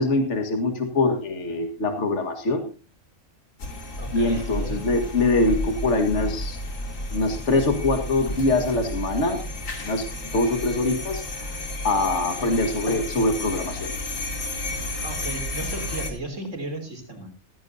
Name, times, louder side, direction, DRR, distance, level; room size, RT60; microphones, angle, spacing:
voice 1, 0.0-2.7 4.1-6.6 7.1-9.4 9.8-10.0 10.3-11.2 11.8-13.9, left 2 dB, 65° left, 6 dB, 2.1 m, -23 dB
sound 1, 3.6-16.1, left 1 dB, 85° left, 2.8 m, -32 dB
voice 2, 4.0-4.9 15.0-17.3, right 2 dB, 70° right, 5 dB, 3.8 m, -35 dB
15.5 x 15.0 x 2.7 m, 0.32 s
omnidirectional pair, 1.3 m